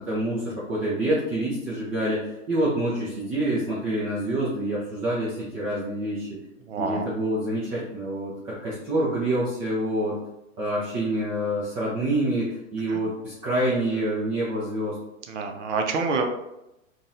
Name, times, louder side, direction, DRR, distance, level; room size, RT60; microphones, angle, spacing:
voice 1, 0.1-6.4 6.8-10.2 10.6-15.0, right 1 dB, 15° right, -7 dB, 0.4 m, -27 dB
voice 2, 6.7-7.0 12.9-13.0 15.3-16.4, right 4 dB, 65° right, 4 dB, 0.7 m, -27 dB
3.9 x 2.4 x 2.5 m, 0.89 s
hypercardioid pair, 125°, 39 cm